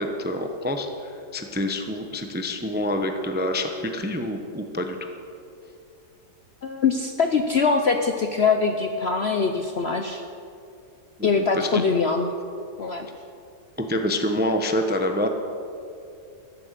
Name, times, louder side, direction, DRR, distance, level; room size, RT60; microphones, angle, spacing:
voice 1, 0.0-5.1 11.2-11.8 13.8-15.3, left 1 dB, 10° right, 5 dB, 0.5 m, -27 dB
voice 2, 6.6-10.2 11.2-12.3 12.8-13.1, left 5 dB, 55° left, 5 dB, 0.7 m, -23 dB
14.0 x 11.5 x 6.7 m, 2.5 s
omnidirectional pair, 1.8 m